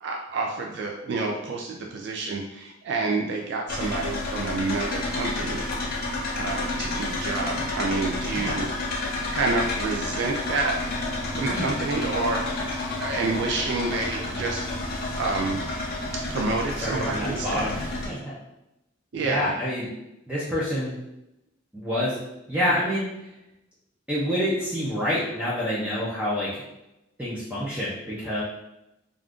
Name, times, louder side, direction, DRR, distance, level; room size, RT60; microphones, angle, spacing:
voice 1, 0.0-5.6 6.3-8.7 9.3-10.8 11.3-12.6 13.0-14.7 15.2-15.6 16.3-17.8 19.1-19.5, right 3 dB, 60° right, 0 dB, 0.3 m, -28 dB
sound 1, 3.7-18.1, left 2 dB, 50° left, 0.6 m, -30 dB
voice 2, 8.3-8.7 11.5-11.7 16.8-18.3 19.1-19.9 20.3-21.0 21.7-22.2 22.5-23.1 24.1-26.6 27.2-28.4, equal, 5° right, -8 dB, 0.5 m, -27 dB
2.5 x 2.4 x 3.5 m, 0.89 s
head